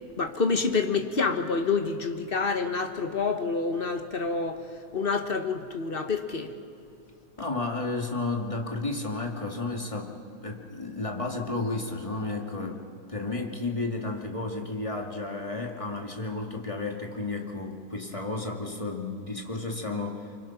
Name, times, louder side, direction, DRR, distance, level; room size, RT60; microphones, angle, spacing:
voice 1, 0.2-4.6 4.9-6.5, left 4 dB, 40° left, 6 dB, 1.5 m, -27 dB
voice 2, 7.4-12.8 13.1-20.3, left 3 dB, 20° left, 1 dB, 2.1 m, -32 dB
29.0 x 24.5 x 5.9 m, 2.5 s
omnidirectional pair, 1.6 m